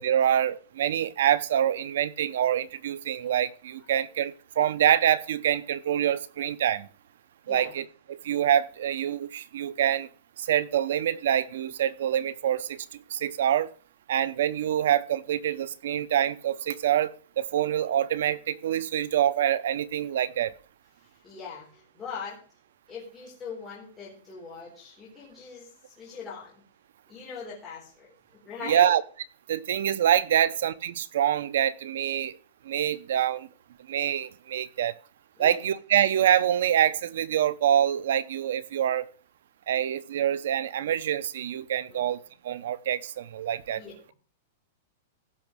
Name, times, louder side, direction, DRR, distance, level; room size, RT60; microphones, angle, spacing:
voice 1, 0.0-6.9 7.5-10.1 10.4-13.7 14.1-20.5 28.6-29.0 29.5-32.4 32.6-33.5 33.9-34.9 35.4-39.1 39.7-43.8, right 10 dB, 70° right, 0.8 m, -26 dB
voice 2, 21.2-22.4 22.9-26.6 27.1-28.1 28.4-28.8 35.4-35.6 41.9-42.2 43.7-44.1, left 5 dB, 10° left, 3.9 m, -41 dB
16.0 x 6.0 x 6.3 m
supercardioid pair, 165°, 0 cm